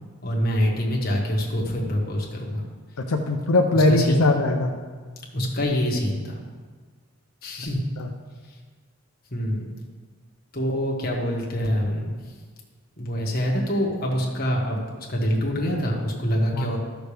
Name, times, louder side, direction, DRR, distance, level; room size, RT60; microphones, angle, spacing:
voice 1, 0.2-2.6 3.7-4.2 5.3-6.4 7.4-7.9 9.3-9.7 10.5-12.2 13.0-14.8 15.1-16.8, equal, 45° left, -2 dB, 1.6 m, -25 dB
voice 2, 3.0-4.8 8.0-8.1 16.5-16.7, left 2 dB, 85° left, 3 dB, 0.6 m, -21 dB
13.5 x 6.3 x 3.4 m, 1.5 s
head